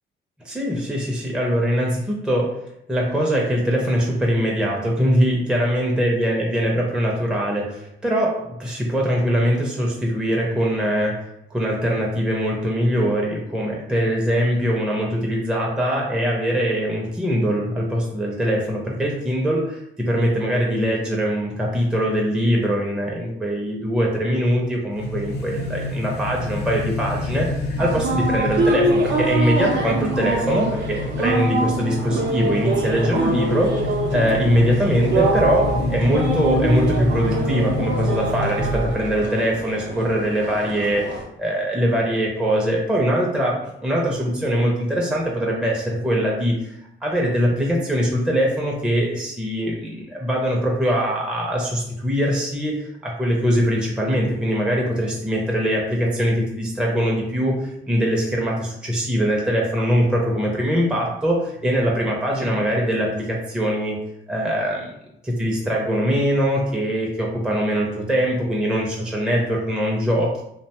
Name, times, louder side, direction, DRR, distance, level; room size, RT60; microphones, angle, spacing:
voice 1, 0.4-2.5 2.9-33.7 34.1-46.8 47.0-64.0 64.3-64.9 65.2-70.4, equal, 5° right, -2 dB, 0.5 m, -22 dB
sound 1, 24.9-39.2, left 2 dB, 55° left, 0.6 m, -28 dB
sound 2, 27.8-41.2, right 2 dB, 70° right, 0.6 m, -25 dB
2.6 x 2.2 x 2.8 m, 0.80 s
cardioid pair, 90°, 20 cm